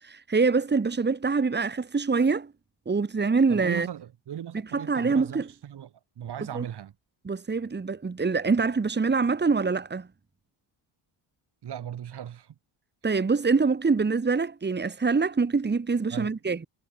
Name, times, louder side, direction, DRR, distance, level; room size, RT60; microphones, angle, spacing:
voice 1, 0.0-2.5 2.9-3.9 4.7-5.5 6.5-6.7 7.3-10.1 13.0-16.7, right 4 dB, 20° right, 3.6 m, -25 dB
voice 2, 3.5-6.9 11.6-12.6 16.1-16.4, right 10 dB, 55° right, 5.4 m, -38 dB
cardioid pair, 155°, 48 cm